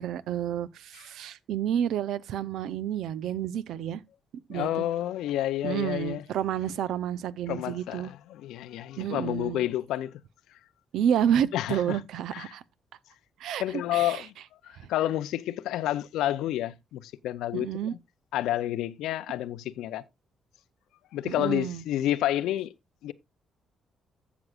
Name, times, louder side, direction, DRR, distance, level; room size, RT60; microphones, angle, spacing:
voice 1, 0.0-4.0 4.5-4.7 5.6-8.1 9.0-9.6 10.9-12.6 13.4-14.3 17.5-17.9 21.2-21.8, right 9 dB, 80° right, 0.5 m, -30 dB
voice 2, 4.5-6.2 7.5-10.1 11.5-12.0 12.3-12.5 13.6-14.3 14.6-17.7 18.3-20.0 21.1-22.7 23.0-23.1, left 13 dB, 90° left, 0.5 m, -29 dB
15.5 x 6.1 x 2.4 m
cardioid pair, 90°, 0 cm